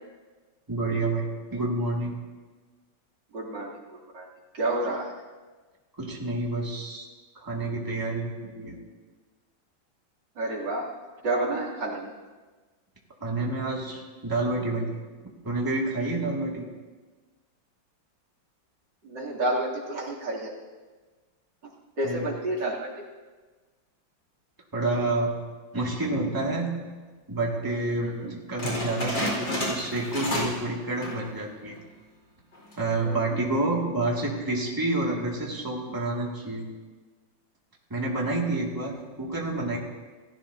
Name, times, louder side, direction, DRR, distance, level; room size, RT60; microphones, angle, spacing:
voice 1, 0.7-2.2 5.9-7.1 7.4-8.8 13.2-15.0 15.4-16.7 22.0-22.3 24.7-25.4 25.7-26.7 27.3-31.8 32.8-36.7 37.9-39.8, right 2 dB, 10° right, -2 dB, 2.0 m, -29 dB
voice 2, 3.3-4.3 4.5-5.1 10.4-10.9 11.2-12.1 19.0-20.5 22.0-22.9 28.0-28.3 33.0-33.4, right 1 dB, 65° right, -5 dB, 3.6 m, -30 dB
sound 1, 28.6-30.7 30.9-31.3 31.8-31.9 32.5-32.9, left 1 dB, 70° left, 5.3 m, -30 dB
28.5 x 15.5 x 2.8 m, 1.4 s
omnidirectional pair, 2.1 m